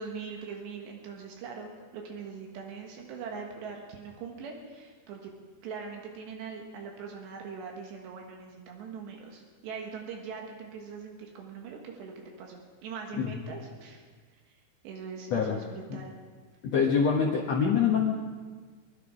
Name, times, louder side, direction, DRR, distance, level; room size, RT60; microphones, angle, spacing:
voice 1, 0.0-5.3 5.6-14.0 14.5-14.6 14.8-16.1, right 5 dB, 90° right, 0 dB, 3.7 m, -41 dB
voice 2, 16.6-18.1, left 6 dB, 75° left, -1 dB, 1.5 m, -25 dB
24.0 x 11.5 x 5.0 m, 1.5 s
omnidirectional pair, 4.9 m